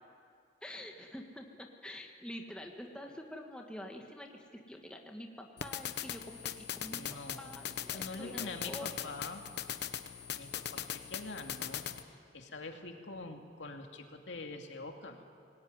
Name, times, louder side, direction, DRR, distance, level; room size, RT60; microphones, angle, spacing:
voice 1, 0.6-7.0 7.4-9.1, left 1 dB, 5° left, 1 dB, 1.7 m, -47 dB
sound 1, 5.6-12.0, left 9 dB, 65° left, 1.1 m, -40 dB
voice 2, 6.9-7.5 7.9-9.4 10.4-15.2, left 3 dB, 85° left, 3 dB, 2.5 m, -45 dB
25.0 x 19.0 x 9.7 m, 2.3 s
head